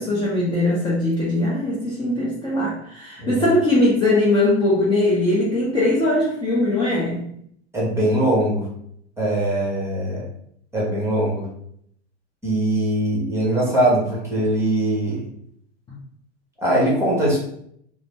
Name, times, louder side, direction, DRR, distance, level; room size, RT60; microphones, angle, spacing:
voice 1, 0.0-7.2, left 1 dB, 15° left, -6 dB, 0.6 m, -20 dB
voice 2, 7.7-8.7 9.2-10.2 10.7-11.5 12.4-15.3 16.6-17.4, right 1 dB, 10° right, -4 dB, 1.1 m, -21 dB
2.5 x 2.0 x 3.3 m, 0.69 s
hypercardioid pair, 115°, 33 cm